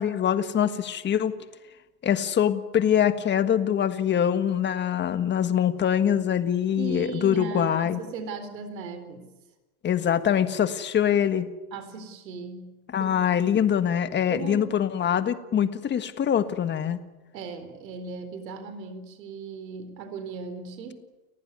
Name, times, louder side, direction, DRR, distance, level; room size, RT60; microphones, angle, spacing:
voice 1, 0.0-1.3 2.0-8.0 9.8-11.5 12.9-17.0, left 9 dB, 20° left, 11 dB, 1.6 m, -24 dB
voice 2, 6.8-9.3 11.7-12.7 13.0-13.1 14.3-14.7 17.3-21.1, right 4 dB, 80° right, 9 dB, 4.2 m, -37 dB
30.0 x 15.0 x 9.6 m, 1.1 s
supercardioid pair, 130°, 49 cm